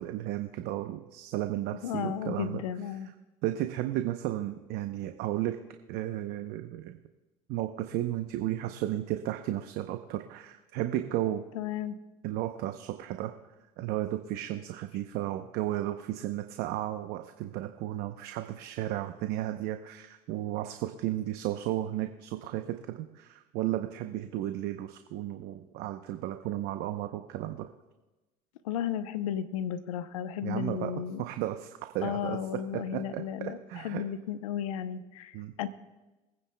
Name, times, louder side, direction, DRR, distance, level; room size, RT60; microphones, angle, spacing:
voice 1, 0.0-2.6 3.4-5.6 5.9-7.0 7.5-11.4 12.2-13.3 13.8-27.7 30.4-30.9 31.2-32.4 32.9-34.0 35.3-35.5, right 13 dB, 70° right, 7 dB, 0.8 m, -34 dB
voice 2, 1.7-3.1 11.5-12.0 28.6-31.3 32.0-35.7, left 9 dB, 90° left, 12 dB, 0.8 m, -34 dB
24.5 x 9.7 x 2.3 m, 1.1 s
hypercardioid pair, 75°, 17 cm